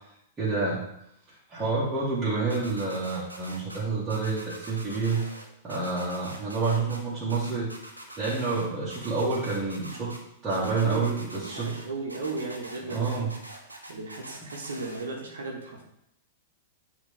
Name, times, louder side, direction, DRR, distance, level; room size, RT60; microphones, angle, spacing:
voice 1, 0.4-0.8 1.5-5.2 5.6-7.7 8.2-10.2 10.4-11.8 12.9-13.3, right 4 dB, 15° right, -11 dB, 2.0 m, -28 dB
sound 1, 2.5-3.8 4.1-5.4 5.7-7.0 7.3-8.6 8.9-10.2 10.5-11.8 12.1-15.0, right 1 dB, 90° right, 1.0 m, -43 dB
voice 2, 10.9-13.3 13.9-15.8, right 3 dB, 65° right, 0 dB, 1.3 m, -36 dB
9.5 x 3.4 x 3.4 m, 0.78 s
figure-of-eight pair, 100°, 0 cm